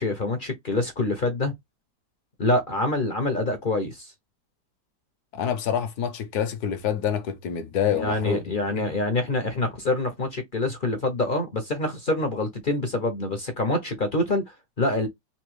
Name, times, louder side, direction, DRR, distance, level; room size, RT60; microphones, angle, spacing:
voice 1, 0.0-1.5 2.4-4.1 7.9-15.1, left 2 dB, 45° left, 0.6 m, -26 dB
voice 2, 5.3-8.9, left 8 dB, 65° left, 1.1 m, -27 dB
4.1 x 2.7 x 3.0 m
omnidirectional pair, 2.0 m